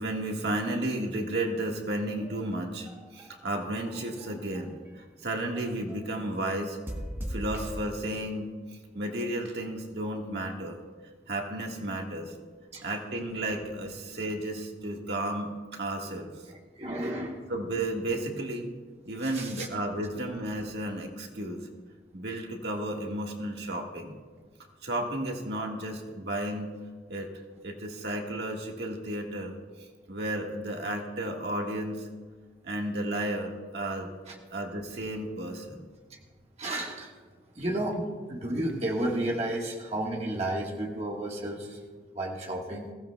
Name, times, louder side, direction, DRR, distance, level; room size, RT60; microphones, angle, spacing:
voice 1, 0.0-6.8 7.3-8.5 8.9-10.8 11.3-12.3 12.8-16.3 17.5-18.7 19.0-21.7 22.1-24.2 24.8-26.7 27.1-27.3 27.6-29.5 30.1-32.1 32.6-34.1 34.5-35.8, right 1 dB, 70° right, 1 dB, 1.6 m, -33 dB
sound 1, 2.2-5.0 5.5-6.1 6.9-7.8, equal, 15° right, 1.1 m, -40 dB
voice 2, 16.5-17.5 19.2-19.7 34.3-34.4 36.1-36.2 36.6-37.1 37.5-41.8 42.1-42.9, right 1 dB, 35° right, -1 dB, 1.5 m, -32 dB
21.0 x 16.0 x 2.3 m, 1.4 s
head